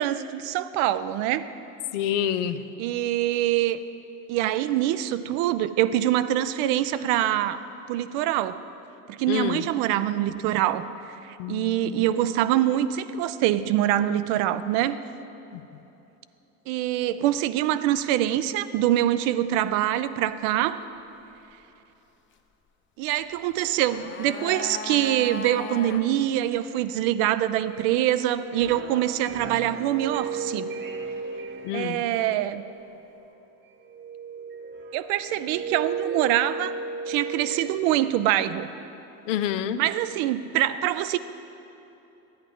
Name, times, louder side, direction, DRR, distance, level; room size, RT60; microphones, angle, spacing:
voice 1, 0.0-1.5 2.8-3.8 4.3-7.6 7.9-8.6 9.1-10.9 11.2-15.0 16.7-20.8 23.0-30.7 31.7-32.6 34.9-36.7 37.1-38.7 39.8-41.2, right 12 dB, 70° right, 14 dB, 0.5 m, -24 dB
voice 2, 1.9-2.6 9.3-9.6 11.4-12.0 31.6-32.0 39.3-39.8, left 10 dB, 85° left, 12 dB, 0.5 m, -27 dB
sound 1, 23.5-26.1 26.3-26.4, left 4 dB, 30° left, 0.6 m, -37 dB
sound 2, 27.5-33.3 33.8-38.1, right 4 dB, 30° right, 0.7 m, -35 dB
11.0 x 8.9 x 3.8 m, 3.0 s
hypercardioid pair, 80°, 37 cm